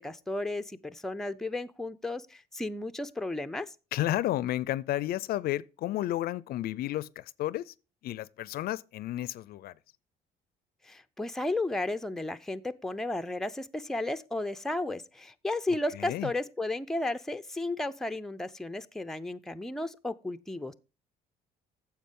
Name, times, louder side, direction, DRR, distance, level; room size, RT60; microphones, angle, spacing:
voice 1, 0.0-3.7 10.9-20.7, left 2 dB, 5° left, 0.5 m, -33 dB
voice 2, 3.9-7.7 8.0-9.7 16.0-16.3, left 14 dB, 65° left, 0.4 m, -32 dB
9.3 x 7.3 x 3.7 m
cardioid pair, 110°, 17 cm